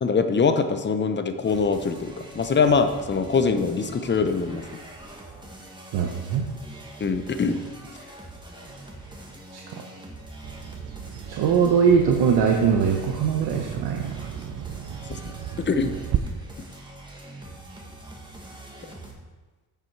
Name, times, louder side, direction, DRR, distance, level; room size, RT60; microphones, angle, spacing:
voice 1, 0.0-4.6 7.0-7.6 15.1-15.2 15.6-16.0, left 5 dB, 30° left, 8 dB, 0.7 m, -23 dB
sound 1, 1.4-19.1, right 1 dB, 10° right, 1.6 m, -43 dB
voice 2, 5.9-6.4 9.5-9.6 11.3-14.3, right 6 dB, 80° right, 1 dB, 1.0 m, -21 dB
Bird vocalization bird call bird song, 10.4-16.2, right 11 dB, 55° right, 0.6 m, -34 dB
9.6 x 5.7 x 4.6 m, 1.3 s
cardioid pair, 110°, 37 cm